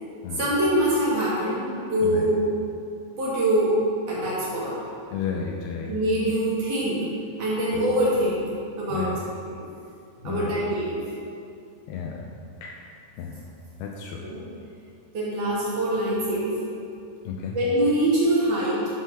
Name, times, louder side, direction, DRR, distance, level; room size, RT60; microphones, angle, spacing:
voice 1, 0.3-2.4 3.2-3.8 4.1-4.8 5.9-7.0 7.4-8.4 8.8-9.5 10.2-11.0 14.2-14.4 15.1-16.6 17.5-18.8, right 1 dB, 50° right, -8 dB, 3.2 m, -24 dB
voice 2, 5.1-5.9 8.9-9.2 10.2-10.6 11.9-12.3 12.6-12.8 13.2-13.4 13.8-14.2 17.3-17.6, left 6 dB, 80° left, 0 dB, 2.3 m, -32 dB
11.5 x 4.7 x 6.0 m, 2.4 s
omnidirectional pair, 5.3 m